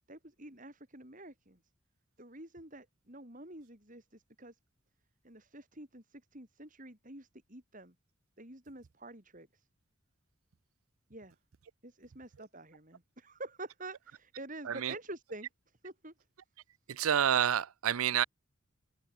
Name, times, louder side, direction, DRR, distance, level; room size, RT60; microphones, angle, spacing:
voice 1, 0.1-1.6 2.2-4.6 5.2-7.9 8.4-9.7 11.1-11.4 11.8-15.5 15.8-16.1, right 2 dB, 40° right, 5.3 m, -48 dB
voice 2, 14.6-15.0 16.9-18.2, right 9 dB, 85° right, 0.5 m, -28 dB
head